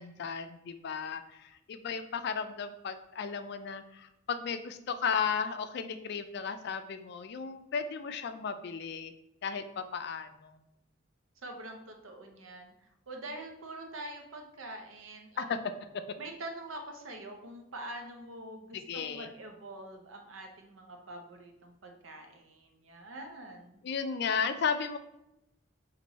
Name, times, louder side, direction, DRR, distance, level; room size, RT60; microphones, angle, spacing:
voice 1, 0.0-9.1 9.4-10.6 15.4-15.6 18.7-19.3 23.8-25.0, left 6 dB, 55° left, 9 dB, 0.4 m, -35 dB
voice 2, 11.4-12.7 13.1-15.7 16.2-23.8, right 1 dB, 90° right, 3 dB, 0.8 m, -45 dB
4.5 x 2.6 x 4.0 m, 0.85 s
head